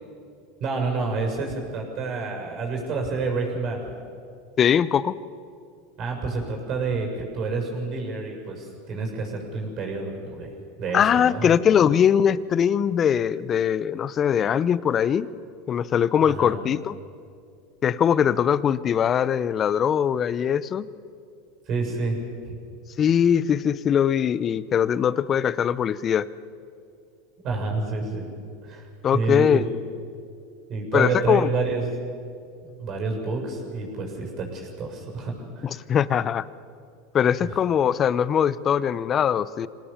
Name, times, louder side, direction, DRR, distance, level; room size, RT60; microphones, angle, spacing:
voice 1, 0.6-3.8 6.0-10.5 10.8-11.5 16.3-16.5 21.7-22.2 22.4-22.6 27.4-28.3 28.6-29.6 30.7-31.9 32.6-35.8 37.4-37.6, right 3 dB, 45° right, 2 dB, 7.0 m, -29 dB
voice 2, 4.6-5.1 10.9-15.3 15.7-17.0 17.8-20.9 23.0-26.3 29.0-29.7 30.9-31.5 35.6-36.4 37.1-39.7, left 8 dB, 35° left, 18 dB, 0.7 m, -21 dB
25.0 x 18.0 x 7.2 m, 2.4 s
hypercardioid pair, 105°, 0 cm